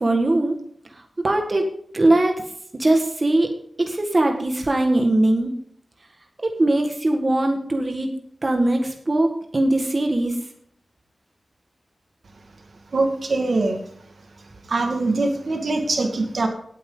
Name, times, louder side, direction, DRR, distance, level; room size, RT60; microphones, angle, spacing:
voice 1, 0.0-0.6 1.2-2.4 2.7-3.5 3.8-5.5 6.4-8.1 8.4-10.4, right 1 dB, 35° right, 3 dB, 1.7 m, -20 dB
voice 2, 12.9-13.8 14.7-16.5, right 3 dB, 70° right, 4 dB, 1.9 m, -22 dB
17.5 x 9.0 x 3.9 m, 0.66 s
wide cardioid pair, 105°, 0 cm